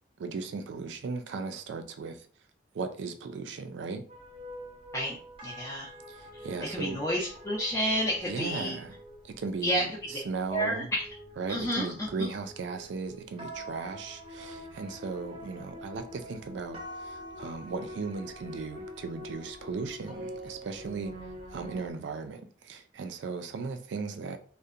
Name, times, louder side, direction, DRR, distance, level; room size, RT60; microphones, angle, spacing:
voice 1, 0.2-2.3 2.7-4.0 6.1-7.0 8.3-9.0 9.2-10.9 11.4-21.1 21.5-24.4, right 4 dB, 75° right, 0.3 m, -37 dB
sound 1, 4.1-21.9, equal, 30° right, 0.6 m, -45 dB
voice 2, 4.9-5.9 6.3-8.8 9.6-10.0 10.5-11.0 11.5-12.3, equal, 15° left, 0.4 m, -31 dB
2.6 x 2.1 x 2.4 m
head